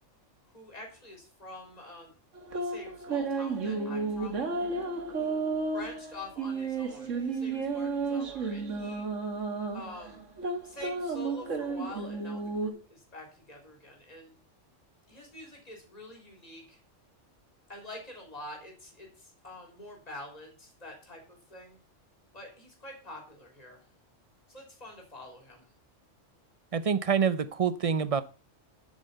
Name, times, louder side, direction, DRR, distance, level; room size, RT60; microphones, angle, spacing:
voice 1, 0.5-2.2 2.5-4.4 5.1-9.1 9.7-10.2 10.6-14.4 15.1-16.8 17.7-21.8 22.3-23.9 24.5-25.7, left 2 dB, 30° left, 3.6 m, -46 dB
sound 1, 2.3-12.7, right 4 dB, 75° right, 2.1 m, -32 dB
voice 2, 26.7-28.2, right 6 dB, 40° right, 0.5 m, -26 dB
10.5 x 7.5 x 5.5 m
omnidirectional pair, 1.3 m